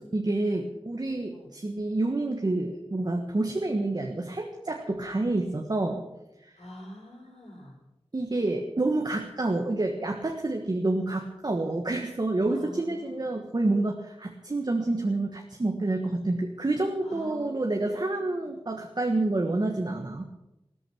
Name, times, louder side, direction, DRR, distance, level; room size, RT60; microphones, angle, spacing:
voice 1, 0.0-6.0 8.1-20.3, right 2 dB, 40° right, 2 dB, 1.6 m, -28 dB
voice 2, 6.6-7.8 12.4-13.4 17.0-18.4, left 1 dB, 90° left, -1 dB, 5.7 m, -46 dB
15.5 x 13.5 x 6.2 m, 0.93 s
wide cardioid pair, 80°, 10 cm